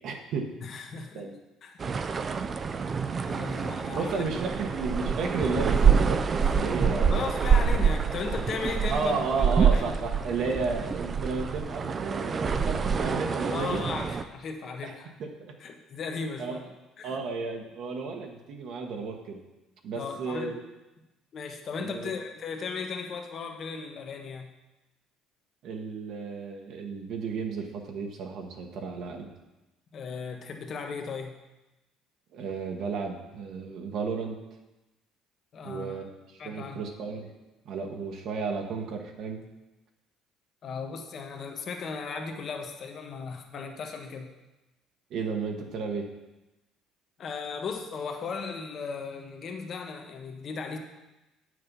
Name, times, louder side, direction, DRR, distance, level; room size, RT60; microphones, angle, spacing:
voice 1, 0.0-0.5 1.1-1.4 3.9-7.3 8.9-13.8 14.8-14.9 15.2-15.5 16.4-16.6 17.0-19.4 19.8-20.6 21.8-22.1 25.6-29.3 32.3-34.4 35.6-36.1 36.4-37.3 37.6-39.4 45.1-46.1, right 4 dB, 60° right, 2 dB, 1.2 m, -33 dB
voice 2, 0.6-1.2 1.6-1.8 3.2-4.3 7.1-10.0 10.5-10.6 13.5-15.1 15.6-16.7 17.0-17.1 19.9-20.6 21.3-24.5 29.9-31.3 35.5-36.0 36.4-36.8 40.6-44.3 47.2-50.8, left 5 dB, 45° left, 4 dB, 1.2 m, -36 dB
sound 1, 1.8-14.2, right 6 dB, 30° right, 0.5 m, -26 dB
8.7 x 6.5 x 5.4 m, 1.0 s
cardioid pair, 125°, 0 cm